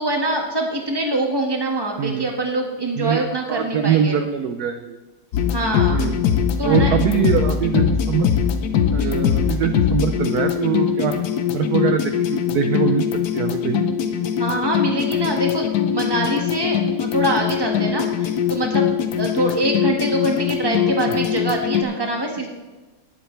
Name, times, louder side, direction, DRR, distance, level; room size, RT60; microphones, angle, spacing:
voice 1, 0.0-4.2 5.5-6.0 6.6-6.9 9.0-9.2 14.4-18.9 19.2-22.5, right 1 dB, 15° right, 1 dB, 1.4 m, -24 dB
voice 2, 2.0-2.3 3.0-3.2 3.5-5.0 5.9-6.2 6.6-8.3 8.9-11.1 11.5-13.0 13.3-13.8 21.1-21.2, right 8 dB, 70° right, 6 dB, 0.9 m, -22 dB
sound 1, 5.3-21.8, left 8 dB, 60° left, 1.2 m, -22 dB
19.0 x 7.8 x 3.3 m, 1.2 s
omnidirectional pair, 2.3 m